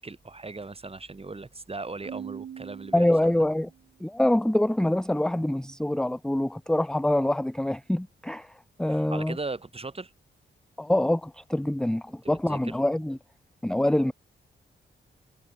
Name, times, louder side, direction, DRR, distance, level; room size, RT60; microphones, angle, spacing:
voice 1, 0.0-3.5 8.9-10.1 12.2-12.8, right 3 dB, 30° right, 4.8 m, -38 dB
Keyboard (musical), 2.0-3.9, right 9 dB, 85° right, 3.7 m, -42 dB
voice 2, 2.9-3.7 4.0-8.5 8.8-9.4 10.8-13.2 13.6-14.1, left 1 dB, 5° left, 0.6 m, -25 dB
cardioid pair, 90°, 20 cm